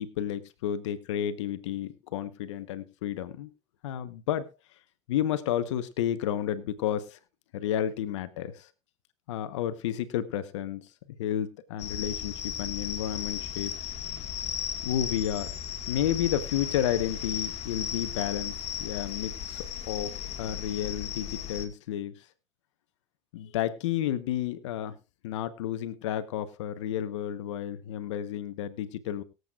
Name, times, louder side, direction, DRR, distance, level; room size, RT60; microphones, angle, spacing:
voice 1, 0.0-3.5 3.8-4.5 5.1-7.2 7.5-8.7 9.3-10.9 11.2-13.7 14.8-15.5 15.9-18.5 18.8-22.2 23.3-25.0 25.2-29.2, left 11 dB, 80° left, 12 dB, 1.1 m, -31 dB
sound 1, 11.8-21.7, left 8 dB, 45° left, 1.9 m, -35 dB
23.0 x 8.0 x 2.4 m, 0.27 s
supercardioid pair, 95°, 15 cm